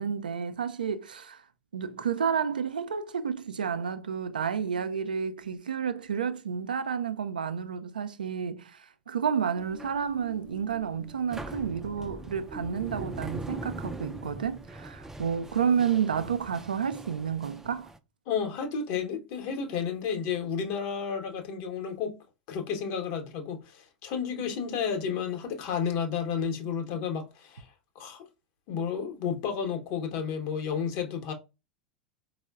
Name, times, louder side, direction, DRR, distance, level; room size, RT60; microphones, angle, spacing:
voice 1, 0.0-1.4 1.7-17.9, right 7 dB, 85° right, 0.3 m, -30 dB
sound 1, 9.6-18.0, right 1 dB, 10° right, 0.3 m, -42 dB
voice 2, 18.3-22.2 22.5-27.7 27.9-28.3 28.7-31.3, left 7 dB, 55° left, 0.8 m, -32 dB
4.3 x 2.0 x 2.2 m
hypercardioid pair, 85°, 5 cm